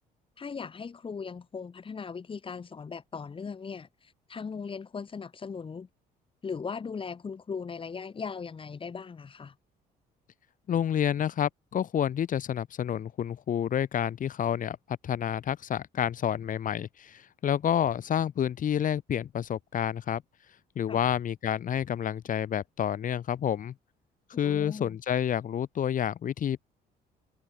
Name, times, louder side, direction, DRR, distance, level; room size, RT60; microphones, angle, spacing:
voice 1, 0.4-5.9 6.4-9.5 20.9-21.0 24.4-25.0, left 5 dB, 30° left, 6.8 m, -38 dB
voice 2, 10.7-14.8 15.0-20.2 20.8-23.7 24.4-26.6, left 9 dB, 50° left, 7.7 m, -29 dB
cardioid pair, 110°, 17 cm